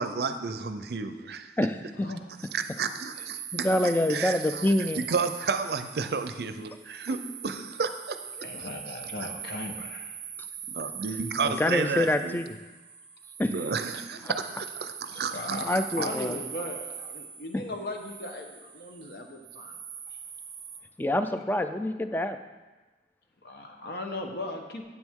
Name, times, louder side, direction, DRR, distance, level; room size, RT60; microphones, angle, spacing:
voice 1, 0.0-1.5 2.5-4.6 4.9-8.2 10.7-12.4 13.5-15.6, right 5 dB, 65° right, 9 dB, 0.5 m, -32 dB
voice 2, 1.6-2.1 3.5-5.0 11.4-12.6 13.4-13.5 14.2-14.3 15.6-16.4 21.0-22.4, left 1 dB, 10° left, 8 dB, 0.3 m, -26 dB
sound 1, 2.3-20.8, right 8 dB, 35° right, 0.8 m, -42 dB
voice 3, 8.4-10.1 15.1-19.8 23.4-24.8, left 2 dB, 60° left, 3 dB, 1.0 m, -38 dB
9.2 x 8.0 x 3.6 m, 1.2 s
head